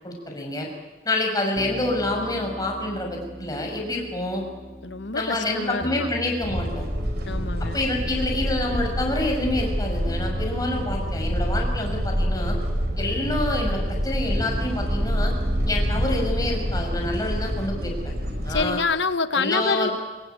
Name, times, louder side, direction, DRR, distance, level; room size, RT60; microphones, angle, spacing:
voice 1, 0.0-0.7 1.0-4.4 5.1-6.9 7.6-12.6 13.0-15.3 15.7-18.1 18.5-18.8 19.3-19.9, left 1 dB, 20° left, 1 dB, 5.9 m, -27 dB
sound 1, 1.6-18.6, equal, 20° right, 2.0 m, -39 dB
voice 2, 4.8-6.1 7.3-7.8 18.5-19.9, left 4 dB, 70° left, 12 dB, 1.2 m, -26 dB
sound 2, 6.4-18.7, equal, 55° right, 5.0 m, -27 dB
24.0 x 22.5 x 9.5 m, 1.2 s
head